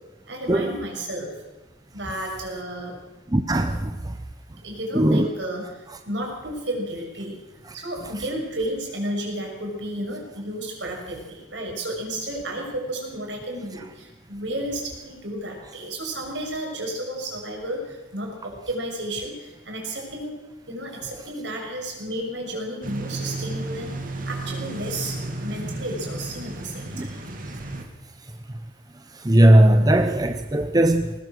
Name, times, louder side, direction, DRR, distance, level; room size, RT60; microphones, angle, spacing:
voice 1, 0.3-1.3 1.9-3.0 4.6-7.4 7.7-20.4 20.7-27.2, right 1 dB, 70° right, 6.9 m, -32 dB
voice 2, 3.3-4.2 4.9-5.3 27.0-27.1 29.2-31.1, right 1 dB, 20° right, 0.9 m, -18 dB
sound 1, 22.8-27.8, right 2 dB, 45° right, 2.6 m, -33 dB
20.5 x 19.5 x 6.6 m
head